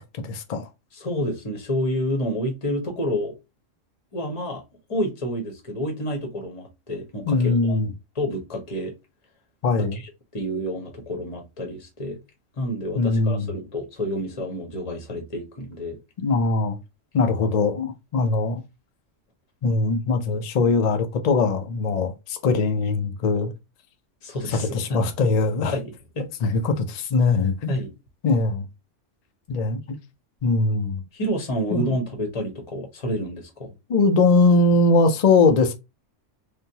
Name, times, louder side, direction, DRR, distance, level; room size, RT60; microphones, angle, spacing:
voice 1, 0.3-0.7 7.3-7.9 9.6-10.0 13.0-13.5 16.2-16.8 17.1-18.6 19.6-23.5 24.6-25.7 26.4-27.7 28.2-28.7 29.5-29.8 30.4-31.0 31.7-31.9 33.9-35.7, left 3 dB, 55° left, 0.4 m, -21 dB
voice 2, 0.9-3.4 4.1-4.6 4.9-7.8 8.2-8.9 9.9-12.2 12.6-16.0 24.2-25.0 25.7-26.3 27.7-27.9 31.1-33.7, equal, 30° left, 0.8 m, -29 dB
3.4 x 2.1 x 2.7 m
omnidirectional pair, 1.3 m